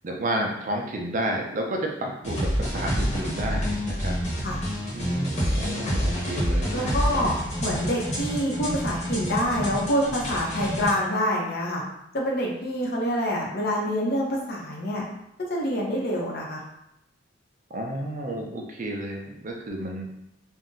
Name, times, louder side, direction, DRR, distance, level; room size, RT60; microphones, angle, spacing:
voice 1, 0.0-4.2 4.9-6.9 17.7-20.2, right 1 dB, 45° right, 1 dB, 0.5 m, -31 dB
sound 1, 2.2-10.9, equal, 40° left, 1.0 m, -28 dB
voice 2, 6.7-11.8 12.1-15.0 15.5-16.6, equal, 55° left, -2 dB, 0.7 m, -26 dB
2.5 x 2.1 x 3.7 m, 0.81 s
head